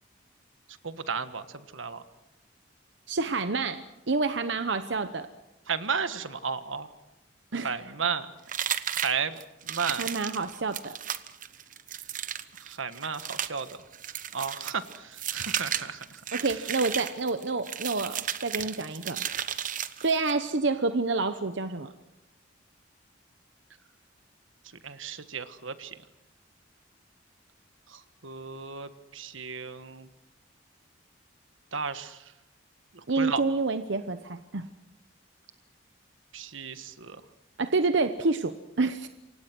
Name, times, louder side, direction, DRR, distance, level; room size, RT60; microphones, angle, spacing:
voice 1, 0.8-2.0 5.7-6.9 7.6-8.3 8.9-9.4 9.6-10.1 12.6-13.8 14.3-16.2 24.8-26.0 27.9-30.1 31.7-32.2 32.9-33.4 36.3-37.2, right 6 dB, 85° right, 11 dB, 1.5 m, -34 dB
voice 2, 3.1-5.3 7.5-7.8 10.0-11.0 16.3-19.2 20.0-21.9 33.1-34.7 37.6-39.1, right 3 dB, 65° right, 10 dB, 0.9 m, -28 dB
sound 1, 8.5-20.4, right 9 dB, 40° right, 0.9 m, -34 dB
28.0 x 24.5 x 6.2 m, 0.95 s
head